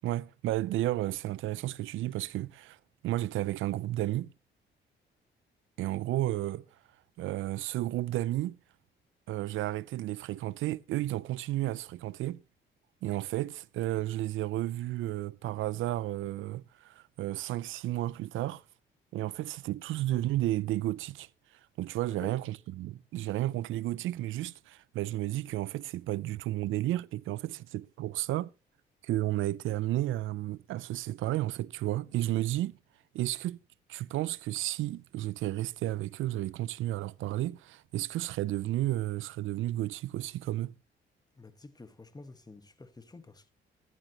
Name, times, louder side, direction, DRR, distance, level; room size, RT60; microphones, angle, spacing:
voice 1, 0.0-2.8 3.0-4.3 5.8-6.6 7.2-8.6 9.3-12.4 13.0-18.6 19.1-21.3 21.8-28.5 29.0-32.8 33.1-33.6 33.9-40.7, right 15 dB, 80° right, 0.6 m, -32 dB
voice 2, 22.1-22.4 41.3-43.5, left 2 dB, 20° left, 1.5 m, -50 dB
14.5 x 11.0 x 3.0 m
cardioid pair, 90°, 20 cm